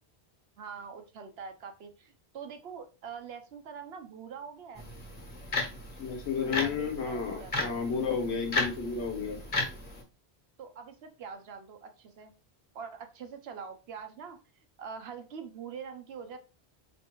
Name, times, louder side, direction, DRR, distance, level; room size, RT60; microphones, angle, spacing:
voice 1, 0.6-4.9 6.4-7.7 10.6-12.3 12.7-14.4 14.8-16.4, right 6 dB, 70° right, 7 dB, 0.9 m, -44 dB
sound 1, 4.7-10.0, left 2 dB, 35° left, 1.3 m, -35 dB
voice 2, 6.0-9.4, left 6 dB, 85° left, 3 dB, 1.2 m, -32 dB
4.4 x 3.1 x 2.9 m, 0.33 s
omnidirectional pair, 1.1 m